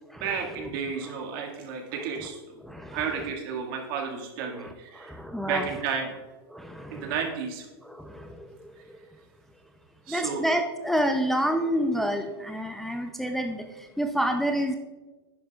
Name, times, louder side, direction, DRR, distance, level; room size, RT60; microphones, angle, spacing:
voice 1, 0.1-2.6 2.9-6.1 6.9-7.7 8.8-8.9 10.1-10.5, right 6 dB, 60° right, 1 dB, 2.0 m, -32 dB
voice 2, 2.6-3.0 4.6-5.7 6.5-7.1 7.8-9.0 10.1-14.8, equal, ahead, 4 dB, 0.6 m, -29 dB
11.0 x 9.6 x 2.4 m, 1.2 s
hypercardioid pair, 120°, 14 cm